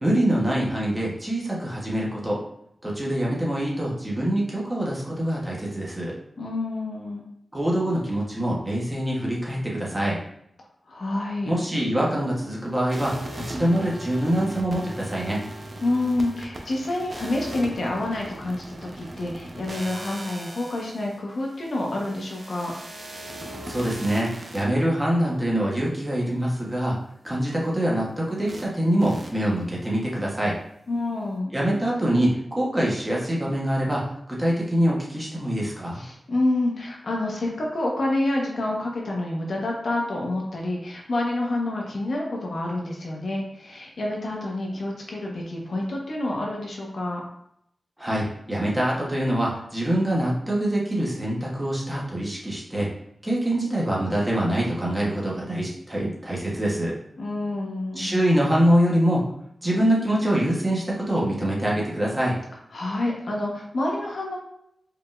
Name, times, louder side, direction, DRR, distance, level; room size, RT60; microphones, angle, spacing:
voice 1, 0.0-2.4 2.8-6.1 7.5-10.2 11.5-15.4 23.7-26.9 27.2-30.6 31.5-34.0 34.3-36.0 48.0-52.9 53.2-56.9 58.0-59.3 59.6-62.4, right 1 dB, 15° right, -4 dB, 1.1 m, -24 dB
voice 2, 6.4-7.3 10.9-11.5 15.8-22.7 30.9-31.5 35.9-47.2 57.2-58.2 62.7-64.4, left 2 dB, 60° left, -1 dB, 1.0 m, -28 dB
sound 1, 12.9-24.6 28.5-28.6 29.0-29.3, right 1 dB, 40° right, 0.7 m, -39 dB
4.8 x 3.6 x 2.5 m, 0.75 s
wide cardioid pair, 130°, 0 cm